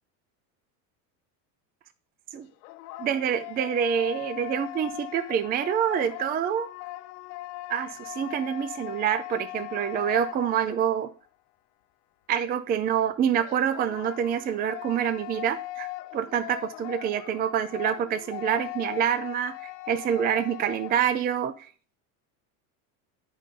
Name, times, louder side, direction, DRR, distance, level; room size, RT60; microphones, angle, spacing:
sound 1, 2.3-11.1 13.4-21.1, left 18 dB, 85° left, 0.6 m, -39 dB
voice 1, 3.0-6.7 7.7-11.1 12.3-15.9 16.1-19.5 19.9-21.7, right 9 dB, 20° right, 12 dB, 0.4 m, -26 dB
8.3 x 5.3 x 3.6 m, 0.41 s
supercardioid pair, 115°, 47 cm